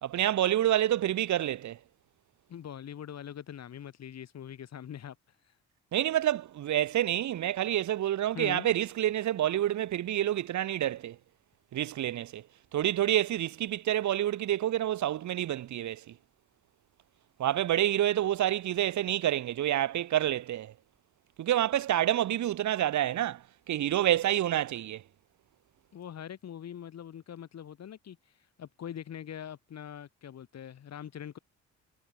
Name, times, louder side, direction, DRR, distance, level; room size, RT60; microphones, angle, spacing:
voice 1, 0.0-1.8 5.9-11.2 11.7-12.4 12.7-16.1 17.4-20.7 21.4-25.0, right 12 dB, 70° right, 1.9 m, -28 dB
voice 2, 2.5-5.2 8.3-8.7 25.9-28.2 28.6-31.4, left 9 dB, 60° left, 4.3 m, -42 dB
cardioid pair, 90°, 30 cm